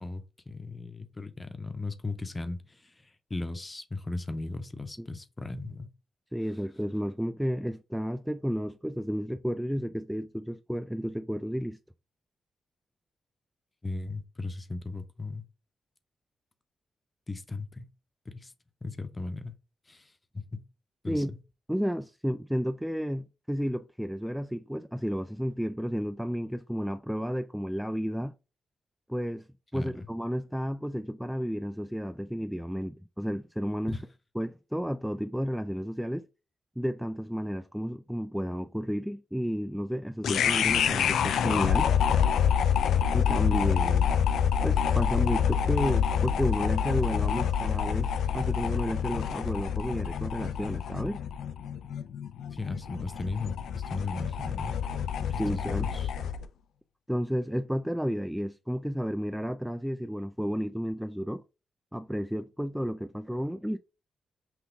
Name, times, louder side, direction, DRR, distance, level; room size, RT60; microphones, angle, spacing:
voice 1, 0.0-5.9 13.8-15.4 17.3-17.9 18.3-18.5 18.8-19.5 19.9-20.6 21.0-21.4 29.7-30.1 33.9-34.1 40.2-40.3 52.5-54.8 55.3-56.1, left 3 dB, 25° left, 0.8 m, -37 dB
voice 2, 6.3-11.8 21.1-21.3 21.7-28.3 29.1-29.5 29.7-34.0 34.4-36.3 36.8-41.9 43.1-44.2 44.6-51.2 55.3-55.9 57.1-61.4 61.9-63.8, equal, 5° right, 0.3 m, -32 dB
sound 1, 40.2-56.4, left 8 dB, 85° left, 0.4 m, -27 dB
5.9 x 2.2 x 3.5 m
cardioid pair, 75°, 0 cm